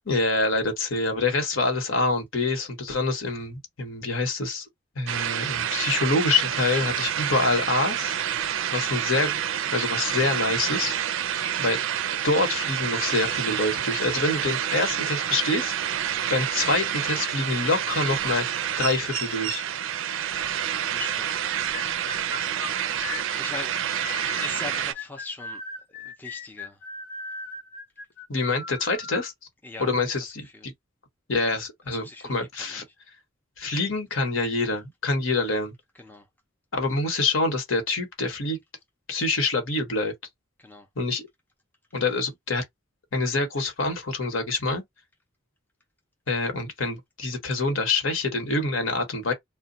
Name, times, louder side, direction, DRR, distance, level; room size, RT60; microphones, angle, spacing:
voice 1, 0.1-4.7 5.0-8.2 8.7-9.4 9.7-11.0 11.6-11.8 12.2-15.7 16.3-18.5 18.8-19.6 28.3-29.3 29.8-30.7 31.3-32.8 33.6-35.7 36.7-38.6 39.1-40.1 41.0-41.3 41.9-42.6 43.1-44.8 46.3-49.3, left 3 dB, 70° left, 1.1 m, -26 dB
sound 1, 5.1-24.9, right 10 dB, 65° right, 0.4 m, -28 dB
voice 2, 20.9-21.5 23.4-23.9 24.4-25.6 26.0-26.8 29.6-30.2 30.5-30.7 31.9-32.4 36.0-36.2 40.6-40.9, left 3 dB, 10° left, 0.4 m, -40 dB
sound 2, 21.3-29.3, left 3 dB, 50° left, 0.8 m, -38 dB
2.2 x 2.1 x 3.9 m
head